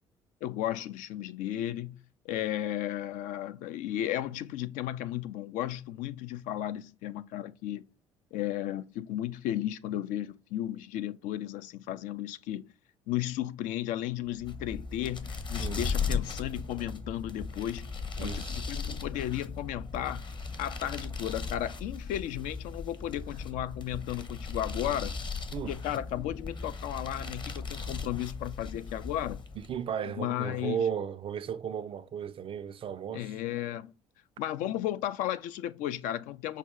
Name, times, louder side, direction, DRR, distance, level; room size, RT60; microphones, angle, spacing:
voice 1, 0.4-7.8 8.3-12.7 13.1-17.9 18.2-20.3 20.6-25.2 25.7-29.4 30.2-30.8 33.1-33.9 34.4-36.6, left 12 dB, 55° left, 0.4 m, -34 dB
sound 1, 14.3-29.8, left 4 dB, 30° left, 0.8 m, -37 dB
voice 2, 18.2-18.6 25.5-25.7 29.6-33.3, right 8 dB, 35° right, 0.4 m, -35 dB
5.5 x 2.2 x 3.6 m
figure-of-eight pair, 50°, 16 cm